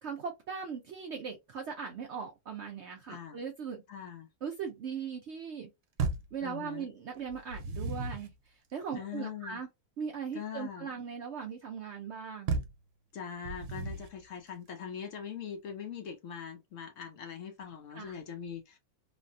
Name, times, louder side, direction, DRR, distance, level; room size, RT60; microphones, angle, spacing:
voice 1, 0.0-3.8 4.4-5.7 6.3-9.7 10.0-12.5 17.9-18.1, right 6 dB, 70° right, 0.7 m, -39 dB
voice 2, 3.1-3.4 3.9-4.3 6.4-6.9 8.9-9.6 10.3-11.0 13.1-18.8, left 7 dB, 65° left, 0.9 m, -42 dB
sound 1, 6.0-6.4 7.3-8.3 12.5-12.8 13.4-14.2, right 4 dB, 90° right, 1.2 m, -34 dB
3.2 x 2.2 x 2.5 m
omnidirectional pair, 1.7 m